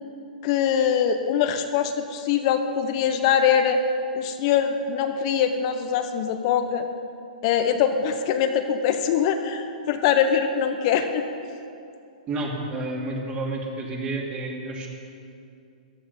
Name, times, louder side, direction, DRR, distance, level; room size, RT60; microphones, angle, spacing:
voice 1, 0.4-3.8 4.1-6.9 7.4-11.2 11.5-11.6, left 8 dB, 45° left, 7 dB, 0.9 m, -23 dB
voice 2, 12.3-14.9, right 2 dB, 25° right, -1 dB, 2.7 m, -30 dB
14.5 x 12.0 x 5.5 m, 2.5 s
hypercardioid pair, 135°, 5 cm